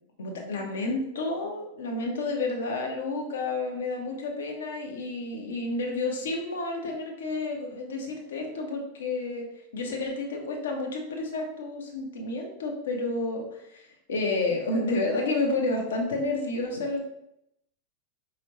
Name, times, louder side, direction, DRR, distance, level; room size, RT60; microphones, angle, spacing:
voice 1, 0.2-9.4 9.7-17.0, left 2 dB, 65° left, 1 dB, 1.0 m, -30 dB
5.2 x 3.1 x 3.0 m, 0.80 s
figure-of-eight pair, 90°, 0 cm